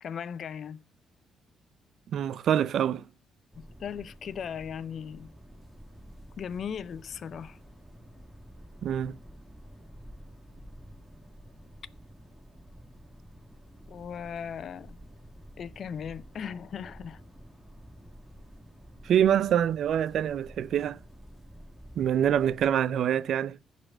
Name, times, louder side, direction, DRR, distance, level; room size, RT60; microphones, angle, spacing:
voice 1, 0.0-0.8 3.6-5.3 6.4-7.6 13.9-15.1 15.6-17.2, left 7 dB, 60° left, 0.5 m, -38 dB
voice 2, 2.1-3.0 8.8-9.2 19.0-21.0 22.0-23.6, right 9 dB, 70° right, 0.4 m, -25 dB
sound 1, 3.5-22.7, equal, 5° right, 2.2 m, -50 dB
10.5 x 4.3 x 7.7 m
cardioid pair, 90°, 0 cm